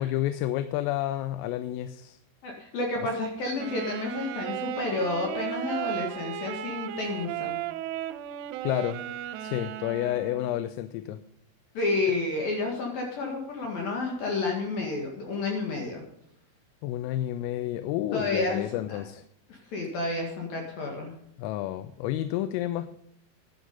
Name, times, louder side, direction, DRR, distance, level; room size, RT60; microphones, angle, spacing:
voice 1, 0.0-2.2 8.6-9.0 9.4-11.2 16.8-19.2 21.4-22.9, left 13 dB, 85° left, 12 dB, 3.2 m, -30 dB
voice 2, 2.4-7.6 11.7-16.0 18.1-19.0 19.5-21.1, left 3 dB, 55° left, 0 dB, 2.9 m, -30 dB
Wind instrument woodwind instrument, 3.6-10.8, right 12 dB, 85° right, 3.0 m, -35 dB
12.0 x 10.0 x 5.4 m, 0.76 s
omnidirectional pair, 6.0 m